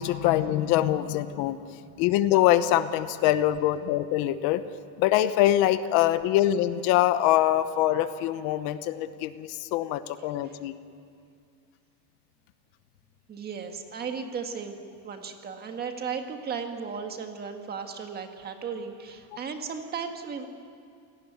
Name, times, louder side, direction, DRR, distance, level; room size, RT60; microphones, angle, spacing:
voice 1, 0.0-1.6 2.0-4.6 5.0-10.7, left 13 dB, 60° left, 12 dB, 1.0 m, -24 dB
voice 2, 13.3-20.5, right 6 dB, 20° right, 5 dB, 1.7 m, -35 dB
28.0 x 18.0 x 9.4 m, 2.3 s
cardioid pair, 175°, 42 cm